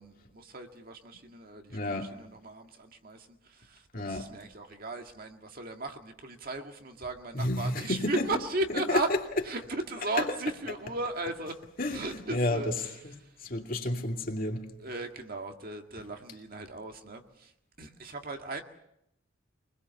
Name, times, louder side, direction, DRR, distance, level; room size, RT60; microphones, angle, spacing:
voice 1, 0.0-9.1 9.5-11.6 11.9-12.9 13.9-14.0 14.8-17.5 17.8-18.6, right 2 dB, 45° right, 1.9 m, -36 dB
voice 2, 1.7-2.1 3.9-4.3 7.3-8.3 8.7-9.0 11.8-12.7 13.0-13.1 13.4-14.6, left 1 dB, 45° left, 2.6 m, -30 dB
24.5 x 20.5 x 6.9 m
head